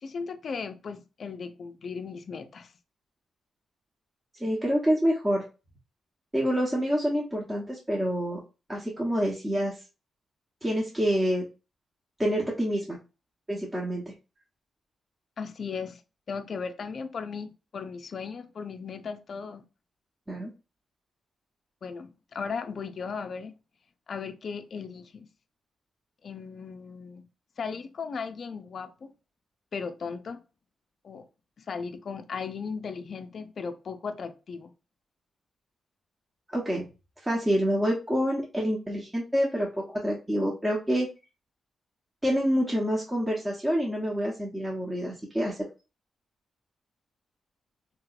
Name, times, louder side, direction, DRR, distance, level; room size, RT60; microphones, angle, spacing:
voice 1, 0.0-2.7 15.4-16.0 16.3-19.6 21.8-23.5 24.1-25.3 26.2-27.2 27.6-29.1 29.7-30.4 31.0-31.3 31.6-34.7, left 5 dB, 55° left, 0.4 m, -36 dB
voice 2, 4.4-5.4 6.3-8.4 8.7-9.8 10.6-11.4 12.2-13.0 13.5-14.1 20.3-20.5 36.5-36.9 37.2-41.1 42.2-45.5, equal, 15° right, 1.0 m, -27 dB
3.1 x 2.9 x 2.4 m
cardioid pair, 75°, 0 cm